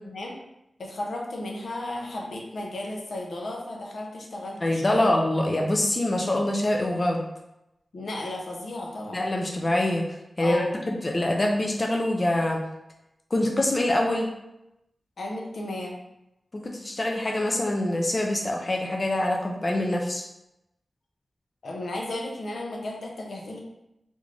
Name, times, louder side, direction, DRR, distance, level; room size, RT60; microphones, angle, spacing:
voice 1, 0.0-0.4 0.8-5.1 7.9-9.2 10.4-10.8 15.2-16.0 21.6-23.6, left 1 dB, 85° left, -1 dB, 0.7 m, -34 dB
voice 2, 4.6-7.2 9.1-12.6 13.3-14.3 16.5-20.2, left 1 dB, 35° left, 0 dB, 0.4 m, -25 dB
3.5 x 2.5 x 3.2 m, 0.89 s
wide cardioid pair, 110°, 0 cm